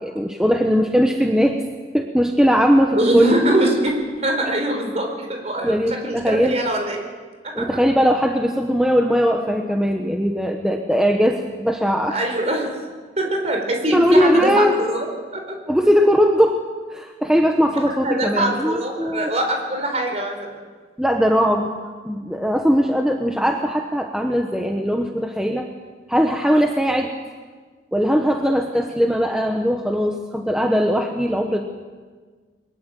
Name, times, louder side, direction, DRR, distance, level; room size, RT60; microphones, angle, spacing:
voice 1, 0.0-1.6 1.9-3.4 5.6-6.6 7.5-12.2 13.9-14.8 15.7-19.3 21.0-21.8 22.0-25.7 26.1-27.2 27.9-31.6, equal, 5° right, 3 dB, 1.0 m, -19 dB
voice 2, 3.0-5.8 6.0-7.1 7.6-7.7 12.1-12.8 13.2-15.1 15.3-15.6 17.7-20.5, right 1 dB, 35° right, 3 dB, 4.4 m, -23 dB
22.0 x 20.0 x 7.6 m, 1.5 s
head